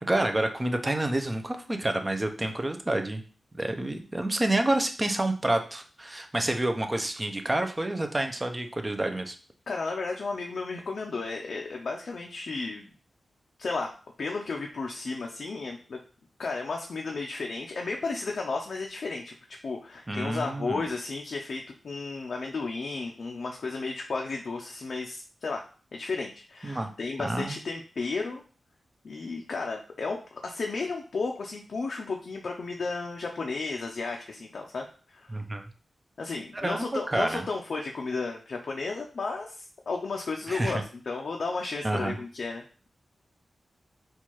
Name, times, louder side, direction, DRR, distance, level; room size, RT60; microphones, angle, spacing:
voice 1, 0.0-3.2 3.5-9.4 20.1-20.9 26.6-26.9 27.2-27.6 35.3-35.7 36.5-37.4 40.5-40.8 41.8-42.2, right 1 dB, 25° right, 6 dB, 0.5 m, -28 dB
voice 2, 9.7-12.9 13.6-13.9 14.2-16.0 16.4-19.3 19.6-25.6 25.9-28.4 29.0-34.9 35.1-35.4 36.2-42.9, left 3 dB, 70° left, 1 dB, 0.4 m, -33 dB
4.4 x 2.3 x 2.9 m, 0.39 s
wide cardioid pair, 75°, 0 cm